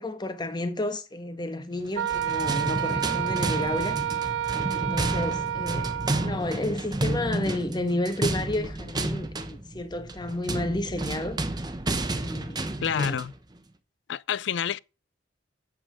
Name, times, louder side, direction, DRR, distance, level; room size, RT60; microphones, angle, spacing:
voice 1, 0.0-4.0 4.7-5.9 6.2-11.4 12.2-12.7 12.9-13.2, left 1 dB, 25° left, 1.2 m, -31 dB
sound 1, 1.9-13.4, right 2 dB, 20° right, 1.0 m, -31 dB
Wind instrument woodwind instrument, 1.9-6.3, right 10 dB, 90° right, 0.4 m, -29 dB
voice 2, 12.8-13.3 14.1-14.8, left 7 dB, 65° left, 0.4 m, -28 dB
8.9 x 7.5 x 5.0 m
head